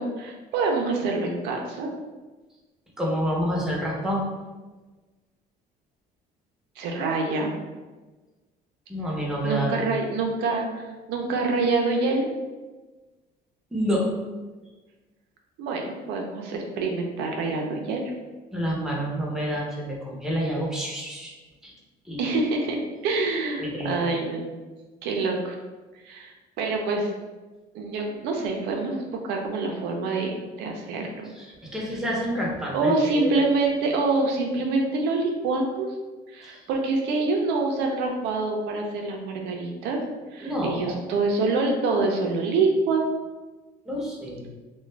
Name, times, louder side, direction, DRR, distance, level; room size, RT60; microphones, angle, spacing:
voice 1, 0.0-1.9 6.8-7.5 9.4-12.3 15.6-18.1 22.2-24.4 25.0-25.6 26.0-27.1 27.7-31.3 32.7-35.9 36.3-40.0 40.3-43.0, right 3 dB, 90° right, 1 dB, 0.5 m, -26 dB
voice 2, 3.0-4.2 8.9-9.8 13.7-14.1 18.5-21.3 21.6-21.7 22.0-22.2 23.6-23.9 31.4-33.3 36.4-36.6 40.4-41.0 43.9-44.5, equal, 5° right, -4 dB, 0.7 m, -28 dB
2.3 x 2.2 x 3.2 m, 1.2 s
cardioid pair, 110°, 17 cm